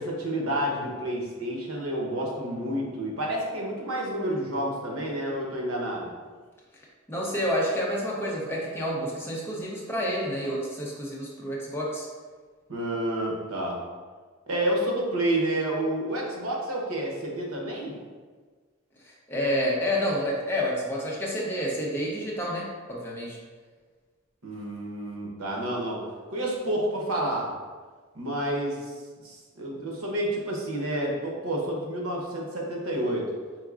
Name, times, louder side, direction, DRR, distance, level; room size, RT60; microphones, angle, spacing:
voice 1, 0.0-6.1 12.7-13.8 14.5-18.0 24.4-26.0 26.3-27.5 28.1-28.9 29.2-33.3, right 1 dB, 85° right, -1 dB, 0.9 m, -29 dB
voice 2, 7.1-12.1 19.0-23.4, equal, 10° left, -4 dB, 0.6 m, -29 dB
4.6 x 3.6 x 2.4 m, 1.5 s
head